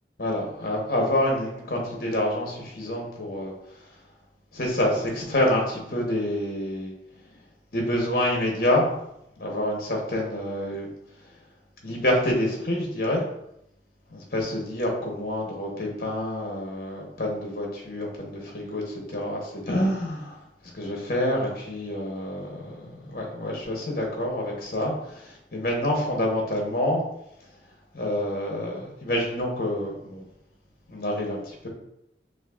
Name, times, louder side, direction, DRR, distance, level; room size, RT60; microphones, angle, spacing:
voice 1, 0.2-3.8 4.5-6.9 7.7-8.9 9.4-10.9 11.8-13.2 14.1-27.0 27.9-30.3 30.9-31.7, left 1 dB, 55° left, -1 dB, 0.9 m, -27 dB
6.3 x 2.5 x 2.4 m, 0.80 s
head